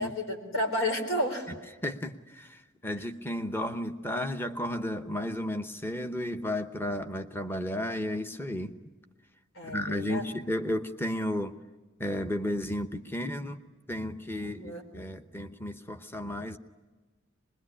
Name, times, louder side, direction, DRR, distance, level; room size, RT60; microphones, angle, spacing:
voice 1, 0.0-1.5 9.6-10.2 14.4-14.8, left 1 dB, 85° left, 4 dB, 4.1 m, -31 dB
voice 2, 1.8-8.8 9.6-11.6 12.0-13.6 13.9-16.6, left 1 dB, 10° left, 7 dB, 0.9 m, -33 dB
25.0 x 21.5 x 10.0 m, 1.3 s
head